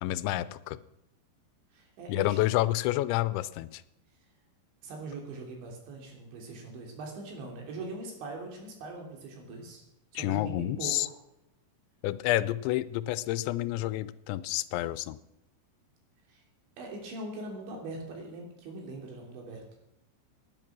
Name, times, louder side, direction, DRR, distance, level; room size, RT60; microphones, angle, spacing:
voice 1, 0.0-0.8 2.1-3.8 10.1-11.1 12.0-15.2, left 15 dB, 90° left, 16 dB, 3.0 m, -29 dB
voice 2, 1.7-2.6 4.8-9.8 10.1-11.1 16.3-16.4 16.8-19.6, right 2 dB, 80° right, 1 dB, 5.4 m, -41 dB
18.5 x 10.5 x 6.1 m, 0.86 s
omnidirectional pair, 5.1 m